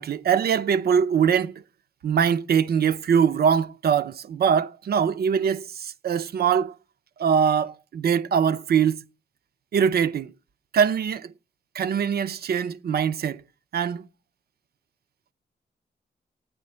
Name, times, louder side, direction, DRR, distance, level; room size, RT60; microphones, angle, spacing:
voice 1, 0.0-1.6 2.0-6.7 7.2-9.0 9.7-10.3 10.7-11.3 11.7-13.4 13.7-14.1, right 7 dB, 65° right, 0.5 m, -22 dB
12.0 x 9.1 x 4.3 m
supercardioid pair, 50°, 18 cm